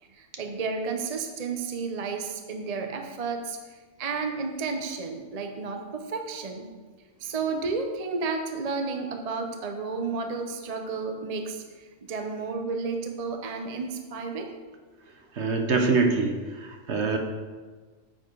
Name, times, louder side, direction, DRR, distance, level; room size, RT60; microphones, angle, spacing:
voice 1, 0.0-6.7 7.2-14.5, right 4 dB, 35° right, 4 dB, 0.8 m, -32 dB
voice 2, 15.4-16.3 16.6-17.2, right 4 dB, 55° right, 4 dB, 1.3 m, -24 dB
9.7 x 7.7 x 4.7 m, 1.4 s
omnidirectional pair, 1.4 m